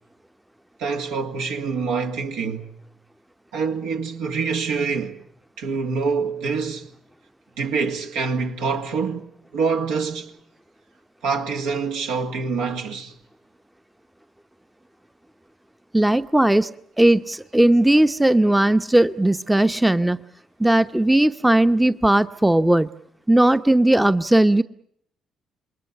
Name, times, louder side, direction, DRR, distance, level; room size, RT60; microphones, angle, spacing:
voice 1, 0.8-2.7 3.5-5.2 5.6-6.9 7.6-10.3 11.2-13.1, right 5 dB, 70° right, 2.4 m, -26 dB
voice 2, 15.9-16.7 17.0-20.2 20.6-22.9 23.3-24.6, right 1 dB, 10° right, 0.9 m, -17 dB
27.5 x 22.0 x 6.8 m
figure-of-eight pair, 45°, 0 cm